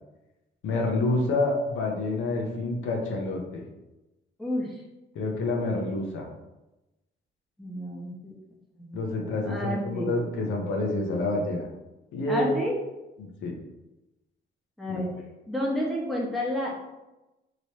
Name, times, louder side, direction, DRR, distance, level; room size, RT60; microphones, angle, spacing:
voice 1, 0.6-3.6 5.1-6.3 8.9-11.7 12.1-12.5 13.2-13.5 14.9-15.0, left 2 dB, 80° left, 0 dB, 0.8 m, -28 dB
voice 2, 4.4-4.8 7.6-8.3 8.8-10.1 12.3-12.7 14.8-15.1 15.5-16.7, left 1 dB, ahead, -4 dB, 1.0 m, -30 dB
3.1 x 2.9 x 2.9 m, 0.99 s
cardioid pair, 90°, 20 cm